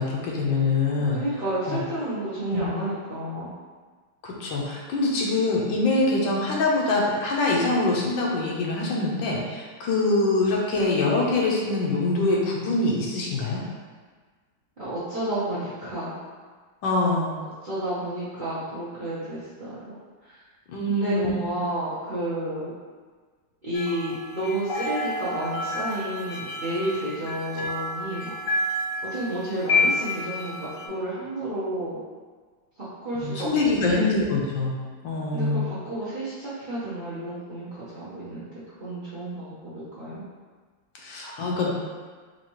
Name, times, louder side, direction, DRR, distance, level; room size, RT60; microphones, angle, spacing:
voice 1, 0.0-1.2 1.6-1.8 2.5-2.8 4.2-13.6 16.8-17.3 20.7-21.3 33.1-34.8 35.0-35.7 41.0-41.7, left 2 dB, 90° left, -2 dB, 1.5 m, -24 dB
voice 2, 1.1-3.5 14.8-16.1 17.6-19.7 20.3-20.4 20.9-22.7 23.6-28.3 29.0-32.0 33.0-34.1 35.3-38.5 38.8-40.2, right 1 dB, 45° right, -12 dB, 0.6 m, -31 dB
sound 1, 23.7-30.9, left 2 dB, 55° left, 1.1 m, -29 dB
4.5 x 2.8 x 2.9 m, 1.5 s
omnidirectional pair, 2.0 m